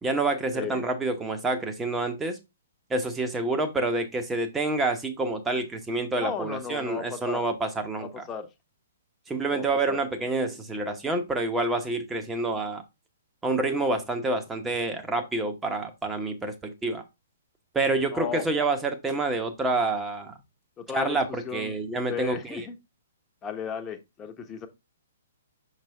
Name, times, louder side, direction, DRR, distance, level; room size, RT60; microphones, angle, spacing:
voice 1, 0.0-2.4 2.9-8.2 9.3-12.8 13.4-17.0 17.7-20.3 20.9-22.7, right 2 dB, 10° right, 1.0 m, -28 dB
voice 2, 6.2-7.4 8.0-8.5 9.5-10.0 18.1-18.5 20.8-21.7 22.1-22.8 23.4-24.7, left 6 dB, 15° left, 0.9 m, -35 dB
6.0 x 5.0 x 3.3 m
figure-of-eight pair, 120°, 0 cm